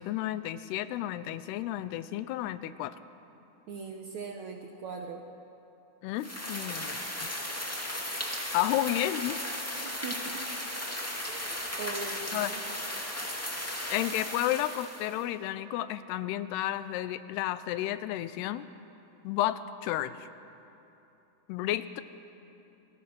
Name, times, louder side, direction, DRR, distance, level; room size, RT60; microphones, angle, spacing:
voice 1, 0.0-3.0 6.0-7.3 8.5-9.4 12.3-12.6 13.9-18.7 19.2-20.3 21.5-22.0, left 13 dB, 90° left, 14 dB, 2.8 m, -32 dB
voice 2, 3.7-5.3 9.8-10.4 11.3-12.6, right 4 dB, 65° right, 3 dB, 1.8 m, -40 dB
sound 1, 6.2-15.2, left 1 dB, 10° left, 0.7 m, -36 dB
28.5 x 20.5 x 6.0 m, 2.9 s
omnidirectional pair, 4.6 m